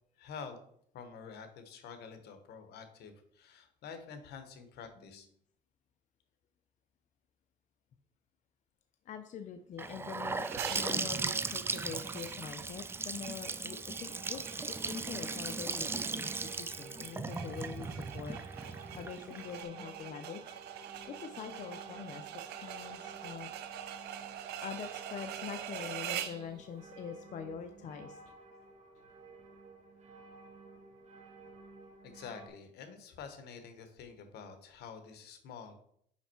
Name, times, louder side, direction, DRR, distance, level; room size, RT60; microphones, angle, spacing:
voice 1, 0.2-0.6 0.9-5.3 32.0-35.7, left 6 dB, 75° left, 7 dB, 1.2 m, -48 dB
voice 2, 9.0-18.4 18.9-20.4 21.1-23.8 24.6-28.4, left 7 dB, 45° left, 7 dB, 0.6 m, -44 dB
Gurgling / Sink (filling or washing) / Bathtub (filling or washing), 9.8-19.6, right 3 dB, 15° right, 0.3 m, -37 dB
sound 1, 10.4-26.5, right 10 dB, 75° right, 0.7 m, -45 dB
sound 2, 13.8-32.5, right 3 dB, 40° right, 1.6 m, -54 dB
5.8 x 5.4 x 4.4 m, 0.67 s
cardioid pair, 110°, 17 cm